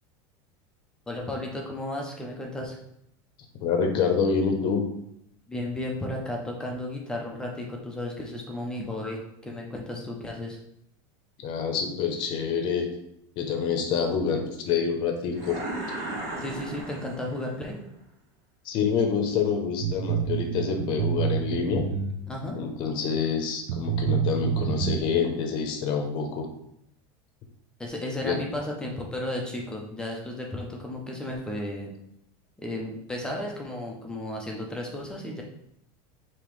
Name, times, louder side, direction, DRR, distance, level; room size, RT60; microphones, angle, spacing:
voice 1, 1.1-2.8 5.5-10.6 16.4-17.8 22.3-22.6 27.8-31.9 32.6-35.4, left 1 dB, 5° left, -1 dB, 0.6 m, -34 dB
voice 2, 3.6-4.8 11.4-12.9 13.4-15.6 18.6-21.8 22.6-26.5 28.2-28.4, left 6 dB, 40° left, 4 dB, 0.8 m, -27 dB
sound 1, 15.3-17.7, right 1 dB, 35° right, 1.2 m, -35 dB
sound 2, 19.8-22.5 23.2-23.3 23.7-25.0, right 9 dB, 65° right, 0.5 m, -27 dB
5.3 x 2.9 x 3.2 m, 0.77 s
supercardioid pair, 160°, 12 cm